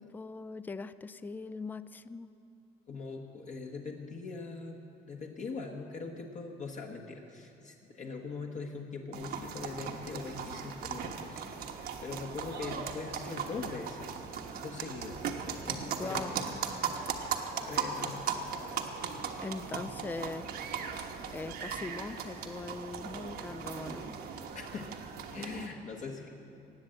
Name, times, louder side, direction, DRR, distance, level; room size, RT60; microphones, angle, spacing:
voice 1, 0.0-2.3 16.0-16.3 19.4-20.5 21.3-24.2, left 3 dB, 10° left, 14 dB, 0.4 m, -41 dB
voice 2, 2.9-14.2 14.6-16.6 17.7-18.8 24.5-25.0 25.3-26.3, left 4 dB, 45° left, 1 dB, 1.3 m, -42 dB
sound 1, 9.1-25.7, right 6 dB, 65° right, 1.2 m, -38 dB
18.5 x 7.6 x 7.8 m, 2.7 s
cardioid pair, 110°, 17 cm